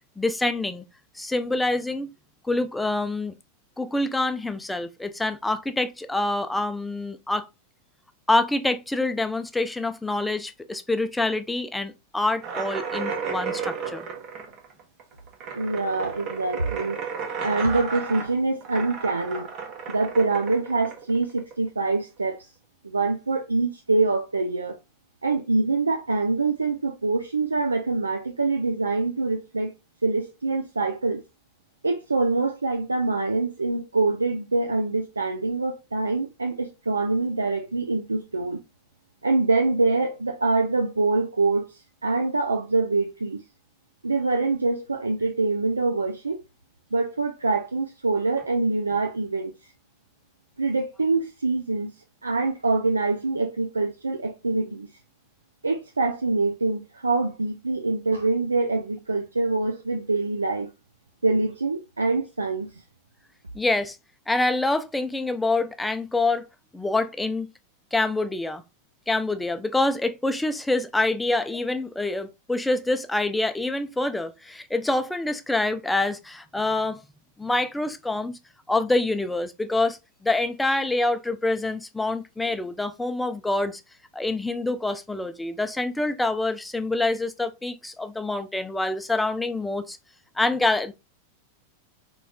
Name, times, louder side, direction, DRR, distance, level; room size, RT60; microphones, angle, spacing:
voice 1, 0.2-0.8 1.2-2.1 2.4-3.3 3.8-7.5 8.3-14.1 63.5-64.0 64.3-66.4 66.7-67.5 67.9-68.6 69.1-77.0 77.4-78.4 78.7-83.8 84.1-90.0 90.4-90.9, left 2 dB, 5° left, 0.4 m, -26 dB
sound 1, 12.4-21.8, right 5 dB, 40° right, 0.8 m, -33 dB
voice 2, 15.6-17.0 17.4-19.5 19.9-22.5 22.8-24.8 25.2-29.7 30.0-31.2 31.8-38.6 39.2-43.4 44.0-46.4 46.9-49.5 50.6-51.9 52.2-54.9 55.6-60.7 61.2-62.7, right 3 dB, 80° right, 0.4 m, -25 dB
4.0 x 3.0 x 2.3 m
figure-of-eight pair, 90°, 0 cm